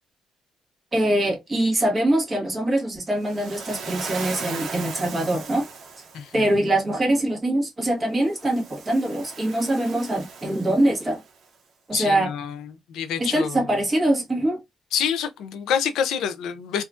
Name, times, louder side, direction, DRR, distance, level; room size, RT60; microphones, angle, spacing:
voice 1, 0.9-5.7 6.3-11.2 11.9-12.3 13.2-14.6, right 1 dB, 20° right, 1.2 m, -23 dB
Waves surf, 3.2-6.4 8.2-11.3, right 5 dB, 60° right, 0.8 m, -37 dB
voice 2, 11.9-13.6 14.9-16.8, left 8 dB, 90° left, 0.5 m, -27 dB
2.8 x 2.3 x 2.4 m
cardioid pair, 120°, 0 cm